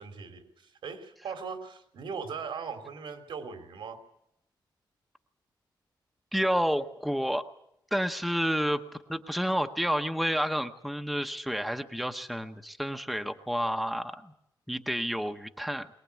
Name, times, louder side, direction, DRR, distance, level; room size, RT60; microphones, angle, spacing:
voice 1, 0.0-4.0, right 5 dB, 85° right, 7 dB, 3.1 m, -39 dB
voice 2, 6.3-7.4 7.9-8.8 9.1-14.3 14.7-15.9, equal, ahead, 6 dB, 0.9 m, -30 dB
22.5 x 20.0 x 8.3 m, 0.79 s
wide cardioid pair, 170°, 8 cm